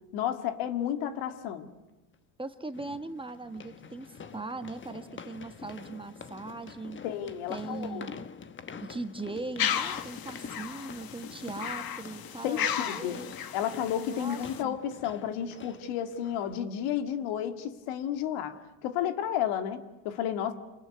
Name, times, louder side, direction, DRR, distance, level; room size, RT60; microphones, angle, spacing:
voice 1, 0.1-1.7 7.0-8.1 12.4-13.2 13.5-20.5, left 10 dB, 80° left, 8 dB, 2.4 m, -32 dB
sound 1, 0.8-0.9 2.7-16.6, left 6 dB, 25° left, 1.1 m, -47 dB
voice 2, 2.4-7.0 7.5-8.3 8.8-13.3 14.1-14.8, right 3 dB, 10° right, 8 dB, 1.5 m, -39 dB
sound 2, 9.6-14.6, left 9 dB, 45° left, 1.7 m, -34 dB
27.5 x 21.0 x 9.6 m, 1.1 s
cardioid pair, 125°, 49 cm